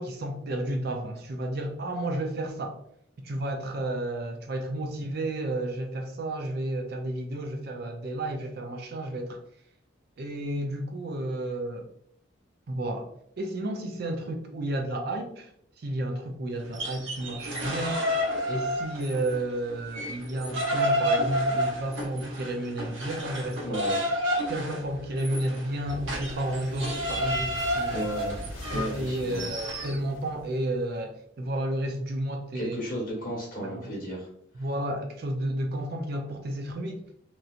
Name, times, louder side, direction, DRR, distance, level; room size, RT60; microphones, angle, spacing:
voice 1, 0.0-2.8 3.2-9.4 10.2-11.9 12.7-13.1 13.4-15.5 15.8-18.1 18.5-23.8 24.5-28.1 28.7-32.8 33.6-33.8 34.6-37.0, right 1 dB, 50° right, 0.4 m, -32 dB
sound 1, 16.6-19.4 19.7-30.0, equal, 65° right, 0.8 m, -30 dB
voice 2, 23.6-24.0 27.9-29.5 32.5-34.3 34.6-34.7, equal, 40° left, 1.3 m, -34 dB
sound 2, 25.8-30.9, left 1 dB, 80° left, 0.6 m, -42 dB
3.0 x 2.7 x 2.4 m
head